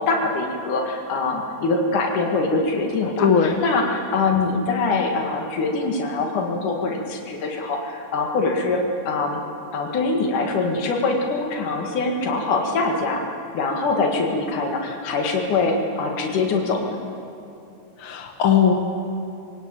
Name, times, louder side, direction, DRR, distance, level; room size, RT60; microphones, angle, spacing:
voice 1, 0.0-9.4 9.7-13.2 13.5-17.0, left 3 dB, 90° left, 1 dB, 3.4 m, -23 dB
voice 2, 3.2-3.6 18.0-18.7, left 7 dB, 55° left, 3 dB, 1.8 m, -18 dB
24.0 x 18.0 x 8.8 m, 2.7 s
omnidirectional pair, 3.5 m